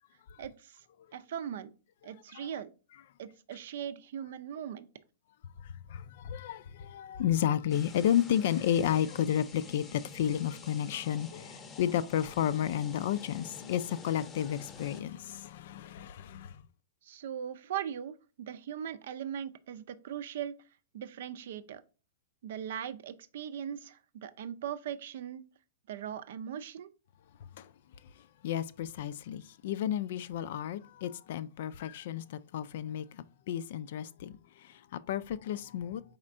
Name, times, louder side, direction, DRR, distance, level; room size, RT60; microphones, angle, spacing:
voice 1, 0.4-0.8 1.1-1.7 2.0-2.7 3.2-4.9 17.0-20.5 20.9-21.8 22.4-25.4 25.9-26.9, right 9 dB, 65° right, 0.5 m, -39 dB
voice 2, 2.1-2.5 5.6-16.7 27.6-27.7 28.0-36.0, left 10 dB, 60° left, 0.3 m, -32 dB
sound 1, 7.7-15.0, left 4 dB, 20° left, 0.7 m, -48 dB
4.3 x 4.2 x 2.5 m
hypercardioid pair, 125°, 0 cm